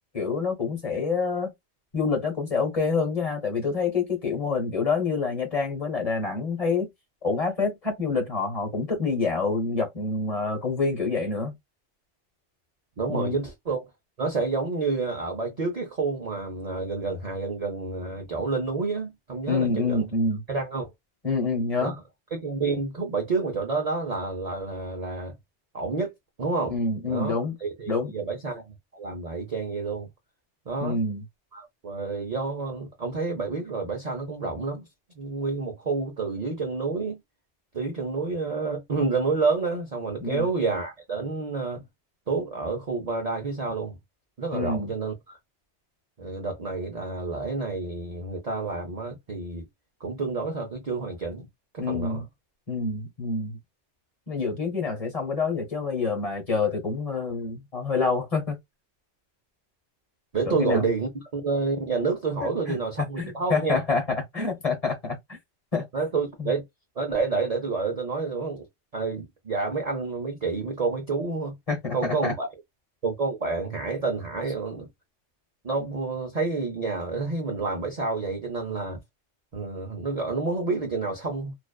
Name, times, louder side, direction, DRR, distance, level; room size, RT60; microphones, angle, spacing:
voice 1, 0.1-1.5 1.9-6.9 7.2-11.5 13.1-13.4 19.5-20.4 21.2-21.9 26.7-27.5 27.9-28.1 30.8-31.2 40.2-40.5 44.5-44.9 51.8-52.2 52.7-53.6 54.3-58.6 60.5-60.9 62.4-62.8 63.2-65.4 65.7-65.9 66.4-66.5 71.7-72.3, left 4 dB, 35° left, 1.0 m, -27 dB
voice 2, 13.0-13.8 14.2-20.1 20.5-20.9 21.8-22.0 22.3-25.3 25.7-26.1 26.4-26.8 27.1-30.1 30.7-31.0 31.5-34.8 35.2-37.2 37.7-41.8 42.3-44.0 44.4-45.4 46.2-49.7 50.0-51.5 51.7-52.2 60.3-63.8 65.9-66.7 67.0-68.7 68.9-71.6 71.9-72.5 73.0-74.9 75.6-79.0 79.5-81.5, right 4 dB, 45° right, 0.5 m, -29 dB
2.5 x 2.2 x 2.2 m
omnidirectional pair, 1.2 m